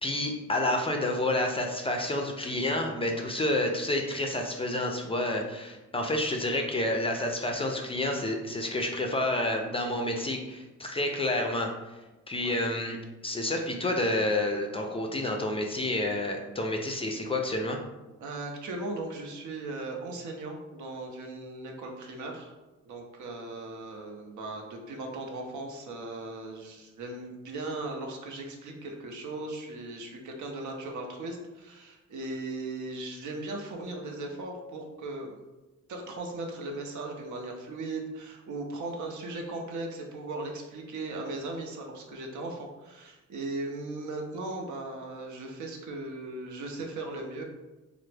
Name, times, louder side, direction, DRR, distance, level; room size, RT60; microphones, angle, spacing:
voice 1, 0.0-11.7 12.3-13.0 13.2-17.8, left 1 dB, 20° left, 2 dB, 0.3 m, -29 dB
voice 2, 18.2-22.5 22.9-35.4 35.9-47.4, right 2 dB, 80° right, 1 dB, 0.6 m, -38 dB
3.3 x 2.0 x 3.2 m, 1.1 s
cardioid pair, 105°, 30 cm